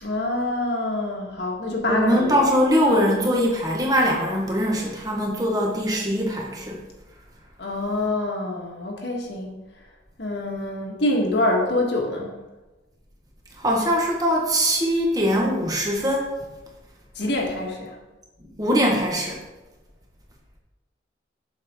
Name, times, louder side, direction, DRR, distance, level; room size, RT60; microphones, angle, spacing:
voice 1, 0.0-2.5 7.6-9.5 10.2-12.4 17.1-18.0, left 1 dB, 65° left, 0 dB, 1.5 m, -25 dB
voice 2, 1.9-6.8 13.6-16.3 17.2-17.3 18.6-19.4, equal, 20° right, -1 dB, 1.3 m, -22 dB
7.7 x 6.3 x 3.7 m, 1.1 s
head